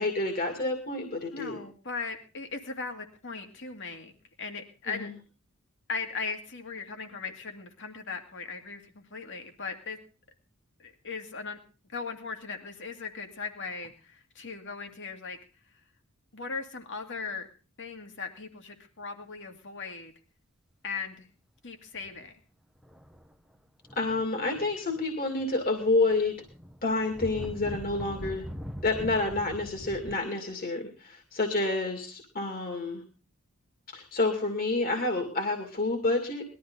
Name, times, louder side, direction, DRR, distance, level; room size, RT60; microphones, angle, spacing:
voice 1, 0.0-1.6 4.9-5.1 24.0-26.3 26.8-28.4 28.8-33.0 33.9-36.4, left 2 dB, 40° left, 3 dB, 2.4 m, -29 dB
voice 2, 1.3-4.1 4.4-5.1 5.9-10.0 10.8-11.6 11.9-15.4 16.3-17.5 17.8-20.1 20.8-21.3 21.6-22.3, left 4 dB, 60° left, 5 dB, 2.4 m, -38 dB
sound 1, 22.0-22.2 22.8-23.3 23.8-25.0 25.4-30.1, equal, ahead, 1.0 m, -42 dB
20.0 x 13.0 x 3.9 m, 0.37 s
head